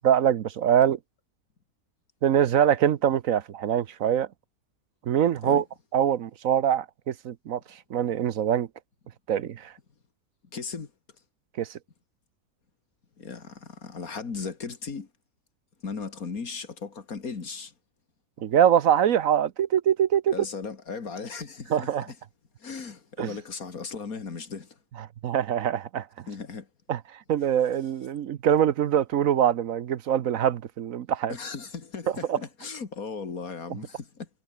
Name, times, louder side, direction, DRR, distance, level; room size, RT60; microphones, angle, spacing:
voice 1, 0.0-1.0 2.2-4.3 5.1-5.6 5.9-7.6 7.9-8.7 9.3-9.7 11.6-11.7 18.4-20.3 21.7-22.1 23.2-23.3 25.2-26.1 26.9-27.0 27.3-31.3 32.3-32.4, right 9 dB, 65° right, 1.2 m, -23 dB
voice 2, 10.5-10.9 13.2-15.1 15.8-17.7 20.3-22.2 22.6-24.8 26.3-26.7 31.3-34.3, left 5 dB, 70° left, 2.7 m, -37 dB
omnidirectional pair, 1.6 m